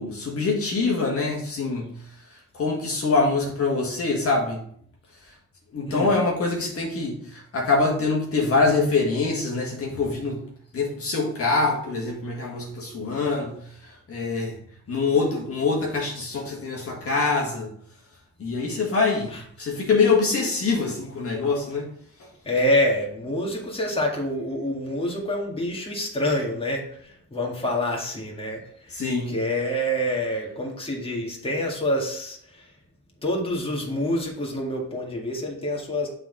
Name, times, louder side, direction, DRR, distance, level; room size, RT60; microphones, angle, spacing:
voice 1, 0.0-1.9 2.5-4.6 5.7-10.4 10.7-14.6 14.9-17.7 18.4-21.9 28.9-29.4, left 3 dB, 50° left, -1 dB, 1.6 m, -24 dB
voice 2, 22.4-28.6 28.9-29.0 29.3-32.7 33.2-36.1, left 1 dB, 20° left, -2 dB, 2.0 m, -27 dB
7.3 x 4.0 x 3.9 m, 0.63 s
cardioid pair, 90°, 30 cm